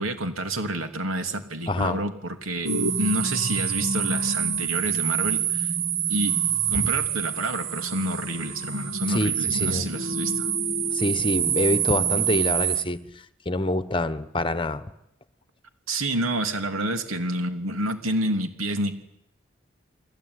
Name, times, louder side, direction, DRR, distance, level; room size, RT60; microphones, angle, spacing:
voice 1, 0.0-2.7 3.0-5.7 6.1-6.3 6.7-10.5 15.9-19.0, right 1 dB, 90° right, 7 dB, 3.0 m, -28 dB
voice 2, 1.7-2.0 6.7-6.9 9.1-9.9 10.9-13.0 13.4-14.8, left 1 dB, 25° left, 13 dB, 1.2 m, -26 dB
sound 1, 2.6-12.8, right 7 dB, 65° right, 1.6 m, -26 dB
30.0 x 20.5 x 9.7 m, 0.80 s
head